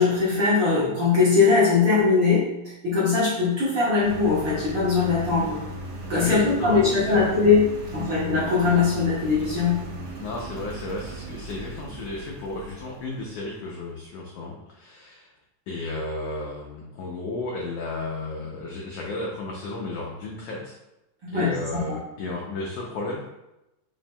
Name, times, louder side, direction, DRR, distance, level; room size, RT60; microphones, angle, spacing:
voice 1, 0.0-2.5 2.8-5.6 6.1-9.9 21.2-21.6, left 4 dB, 55° right, -10 dB, 1.4 m, -21 dB
Engine, 4.0-13.4, right 1 dB, 85° right, 2.2 m, -37 dB
voice 2, 6.2-7.3 10.2-15.3 15.7-20.8 21.3-23.2, left 2 dB, 80° left, -2 dB, 1.4 m, -33 dB
7.1 x 2.7 x 2.2 m, 0.93 s
omnidirectional pair, 3.4 m